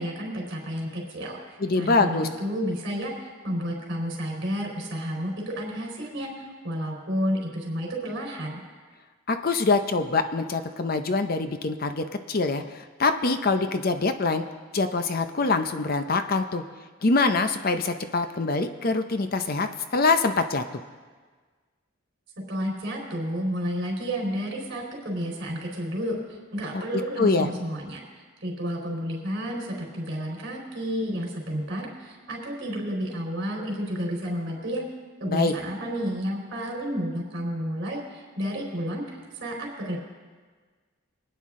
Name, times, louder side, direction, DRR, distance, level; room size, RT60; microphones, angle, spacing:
voice 1, 0.0-8.6 22.5-28.0 28.4-34.8 35.2-40.0, equal, 55° right, -1 dB, 3.9 m, -31 dB
voice 2, 1.6-2.3 9.3-14.4 14.7-16.6 17.0-20.6 26.7-26.8 27.2-27.5 35.2-35.5, left 3 dB, 45° left, 8 dB, 0.6 m, -24 dB
23.5 x 9.3 x 3.7 m, 1.5 s
head